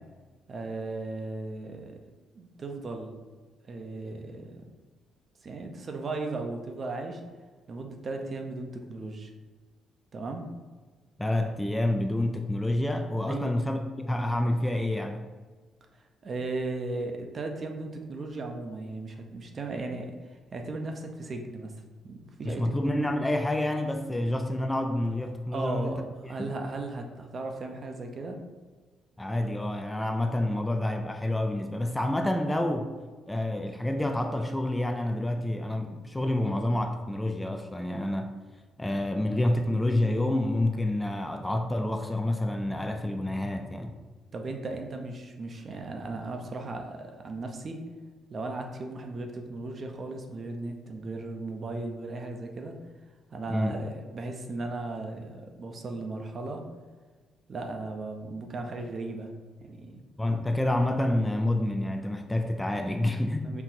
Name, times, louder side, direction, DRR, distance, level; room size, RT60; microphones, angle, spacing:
voice 1, 0.5-2.0 2.3-3.1 3.6-4.6 5.4-7.2 7.7-9.3 10.1-10.4 13.3-13.5 16.2-20.1 20.5-21.7 22.0-22.7 24.1-24.2 25.5-28.4 44.3-47.8 48.3-52.8 53.3-56.6 57.5-59.3 59.6-60.0 63.4-63.6, right 3 dB, 45° right, 4 dB, 0.6 m, -36 dB
voice 2, 11.2-15.2 22.4-26.0 29.2-32.9 33.3-38.3 38.8-44.0 53.5-53.8 60.2-63.5, left 1 dB, 10° left, 5 dB, 0.4 m, -28 dB
4.6 x 2.6 x 4.2 m, 1.4 s
cardioid pair, 90°, 0 cm